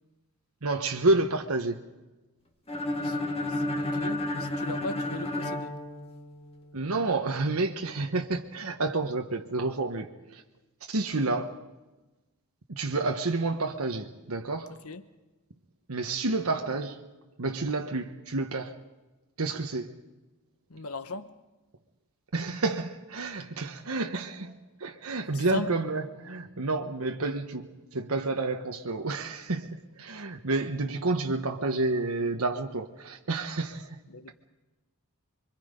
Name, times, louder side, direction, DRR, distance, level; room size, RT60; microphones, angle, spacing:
voice 1, 0.6-1.8 6.7-10.4 10.9-11.6 12.7-14.8 15.9-17.1 17.4-18.8 19.4-20.0 22.3-34.0, right 3 dB, 75° right, 1.2 m, -30 dB
sound 1, 2.7-6.6, left 1 dB, 25° left, 2.0 m, -31 dB
voice 2, 2.9-5.8 14.8-15.0 20.7-21.3 25.3-25.8 34.1-34.5, left 2 dB, 80° left, 1.2 m, -38 dB
26.0 x 24.0 x 5.3 m
head